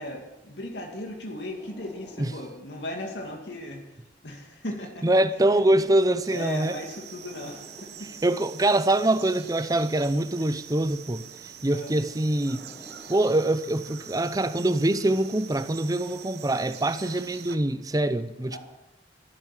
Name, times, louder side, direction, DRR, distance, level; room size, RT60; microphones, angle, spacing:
voice 1, 0.0-3.8 4.2-5.1 5.5-5.6 6.3-8.2 11.7-12.0 18.5-18.6, left 1 dB, 85° left, 2.3 m, -37 dB
sound 1, 0.8-3.9 4.5-8.8 9.5-10.6 11.5-14.8 15.5-15.7, equal, ahead, 3.3 m, -54 dB
voice 2, 5.0-6.8 8.2-11.2 11.6-12.6 13.1-18.6, right 1 dB, 20° right, 0.6 m, -24 dB
sound 2, 6.2-17.6, right 9 dB, 65° right, 1.0 m, -45 dB
13.0 x 12.5 x 7.4 m
head